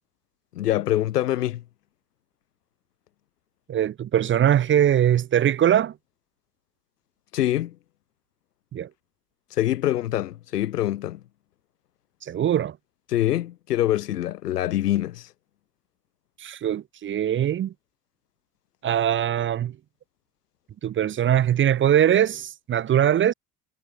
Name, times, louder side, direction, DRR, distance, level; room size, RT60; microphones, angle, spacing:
voice 1, 0.5-1.6 7.3-7.7 9.6-11.2 13.1-15.3, left 13 dB, 75° left, 0.8 m, -24 dB
voice 2, 3.7-5.9 8.7-8.9 12.2-12.8 16.4-17.7 18.8-19.8 20.8-23.3, right 10 dB, 25° right, 0.7 m, -21 dB
figure-of-eight pair, 60°, 47 cm